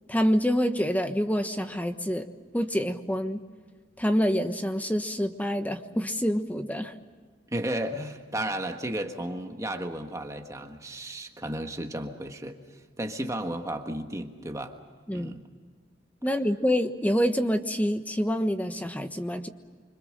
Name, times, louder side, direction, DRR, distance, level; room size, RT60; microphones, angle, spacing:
voice 1, 0.1-2.2 2.5-3.4 4.0-6.9 15.1-15.3 16.2-19.5, equal, 10° left, 8 dB, 1.2 m, -26 dB
voice 2, 7.5-14.8 15.1-15.4, right 1 dB, 15° right, 5 dB, 1.5 m, -34 dB
25.5 x 25.0 x 6.6 m, 1.6 s
head